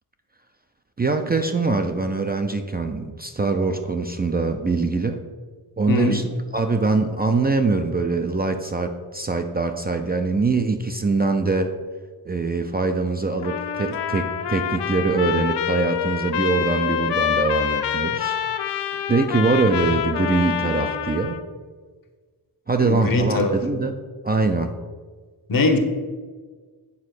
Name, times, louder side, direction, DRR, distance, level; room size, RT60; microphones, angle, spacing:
voice 1, 1.0-5.2 5.8-6.2 6.5-11.7 12.3-18.4 19.1-21.4 22.7-23.9 24.2-24.7, right 3 dB, 25° right, 5 dB, 0.4 m, -23 dB
voice 2, 5.9-6.2 22.8-23.5 25.5-25.8, left 2 dB, 55° left, 6 dB, 1.1 m, -20 dB
Trumpet, 13.4-21.4, left 9 dB, 85° left, 0.6 m, -26 dB
8.3 x 4.2 x 6.6 m, 1.5 s
wide cardioid pair, 140°, 41 cm